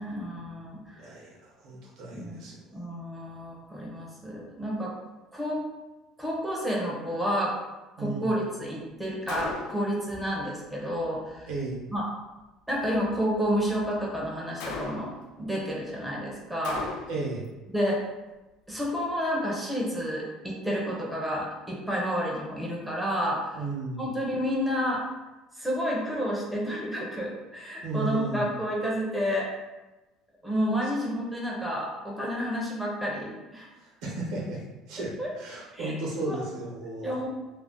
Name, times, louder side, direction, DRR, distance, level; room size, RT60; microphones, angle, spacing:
voice 1, 0.0-1.0 2.1-2.5 2.7-4.9 5.3-5.6 6.2-7.5 8.0-11.5 11.9-12.1 12.7-15.1 15.4-16.8 17.7-18.0 18.7-23.4 24.0-25.0 25.6-29.5 30.4-33.7 35.2-35.3 35.7-36.0 36.2-36.4 37.0-37.3, equal, 5° right, -4 dB, 0.5 m, -30 dB
voice 2, 1.0-2.6 8.0-8.4 11.5-11.8 17.1-17.4 23.5-24.1 27.8-28.5 30.8-30.9 33.8-34.6 34.9-37.2, right 2 dB, 65° right, -3 dB, 0.8 m, -34 dB
Gunshot gunfire, 9.3-10.0 14.6-15.3 16.6-17.3, left 4 dB, 75° left, 0.4 m, -37 dB
2.4 x 2.0 x 3.6 m, 1.1 s
cardioid pair, 180°, 0 cm